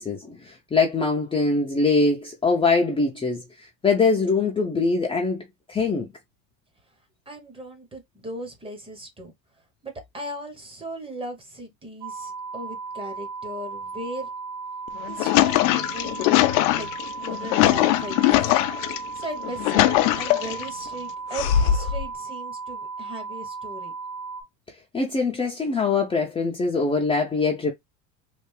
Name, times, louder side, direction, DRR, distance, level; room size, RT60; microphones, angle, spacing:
voice 1, 0.0-5.4 5.7-6.1 24.9-27.7, left 4 dB, 15° left, 0.6 m, -23 dB
voice 2, 7.3-9.3 9.8-14.3 15.0-16.3 16.7-16.9 17.2-18.5 19.1-23.9, right 1 dB, 15° right, 0.9 m, -37 dB
sound 1, 12.0-24.4, right 4 dB, 65° right, 1.2 m, -36 dB
sound 2, 14.9-19.0 19.4-20.7 21.3-22.0, left 14 dB, 80° left, 0.6 m, -21 dB
3.4 x 2.5 x 3.2 m
supercardioid pair, 130°, 39 cm